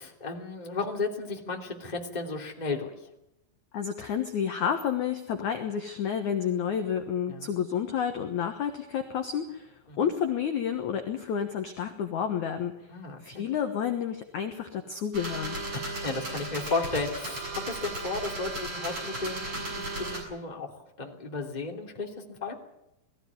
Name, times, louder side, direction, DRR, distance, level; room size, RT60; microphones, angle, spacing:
voice 1, 0.0-3.0 7.3-7.5 9.9-10.1 12.9-13.4 16.0-22.6, left 3 dB, 15° left, 2 dB, 2.1 m, -34 dB
voice 2, 3.7-12.7 13.2-15.6, left 8 dB, 65° left, 6 dB, 2.0 m, -30 dB
sound 1, 15.1-20.2, right 2 dB, 30° right, 7.8 m, -35 dB
20.5 x 15.0 x 9.7 m, 0.84 s
omnidirectional pair, 5.2 m